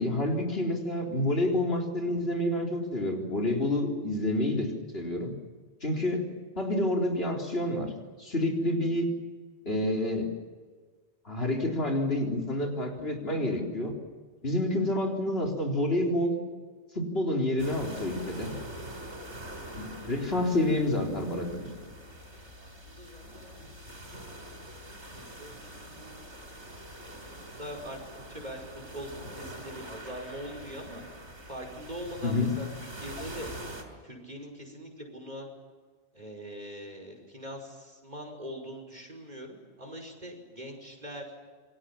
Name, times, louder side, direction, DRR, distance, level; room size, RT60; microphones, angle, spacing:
voice 1, 0.0-5.3 5.8-6.2 6.6-7.9 8.2-9.1 9.7-10.3 11.3-13.9 14.4-16.3 16.9-18.5 19.7-21.7 32.2-32.5, left 1 dB, 55° left, 3 dB, 4.3 m, -28 dB
sound 1, 17.6-33.8, right 1 dB, 75° right, 5.8 m, -44 dB
voice 2, 22.3-24.1 25.4-26.2 27.0-28.0 28.3-28.6 28.9-29.1 29.4-31.0 31.5-33.5 34.0-35.5 36.1-41.2, equal, 35° right, 2 dB, 5.8 m, -42 dB
28.0 x 23.5 x 7.4 m, 1.5 s
omnidirectional pair, 1.2 m